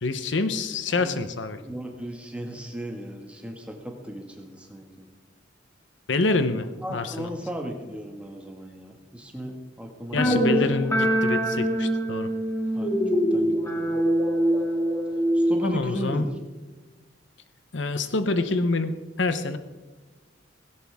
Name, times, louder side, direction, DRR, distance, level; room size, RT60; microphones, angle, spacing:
voice 1, 0.0-1.6 6.1-7.3 10.1-12.3 15.6-16.2 17.7-19.6, left 3 dB, 70° left, 11 dB, 0.9 m, -26 dB
voice 2, 1.6-5.1 6.8-10.5 12.7-14.0 15.3-16.4, equal, 5° right, 2 dB, 1.8 m, -36 dB
sound 1, 10.2-15.7, equal, 15° left, 2.4 m, -24 dB
17.0 x 16.5 x 3.6 m, 1.3 s
head